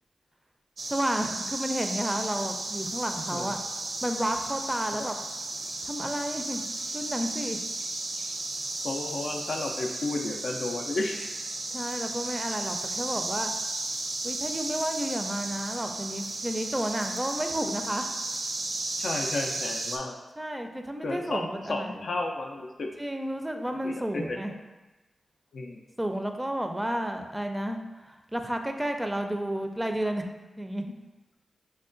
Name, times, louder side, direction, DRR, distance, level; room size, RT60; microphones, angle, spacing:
sound 1, 0.8-20.0, right 2 dB, 70° right, 0.5 m, -34 dB
voice 1, 0.9-3.6 4.0-5.2 5.8-6.6 6.9-7.6 11.7-13.5 14.2-18.0 20.4-22.1 23.0-24.5 26.0-30.2 30.6-30.9, right 1 dB, 15° right, 5 dB, 0.4 m, -31 dB
voice 2, 8.8-11.3 19.0-20.2 21.0-22.9 23.8-24.4 25.5-25.8, left 2 dB, 75° left, 1 dB, 0.3 m, -32 dB
5.4 x 2.2 x 2.5 m, 1.1 s
cardioid pair, 40°, 0 cm